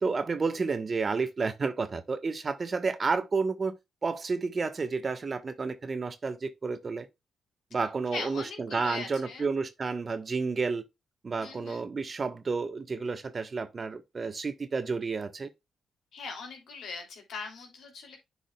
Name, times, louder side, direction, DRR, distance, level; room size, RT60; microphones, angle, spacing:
voice 1, 0.0-3.8 4.0-7.1 7.7-10.8 11.2-15.5, right 4 dB, 45° right, 1.2 m, -31 dB
voice 2, 8.1-9.5 11.4-11.9 16.1-18.2, left 4 dB, 70° left, 2.9 m, -40 dB
10.0 x 5.0 x 2.3 m
supercardioid pair, 50°, 0 cm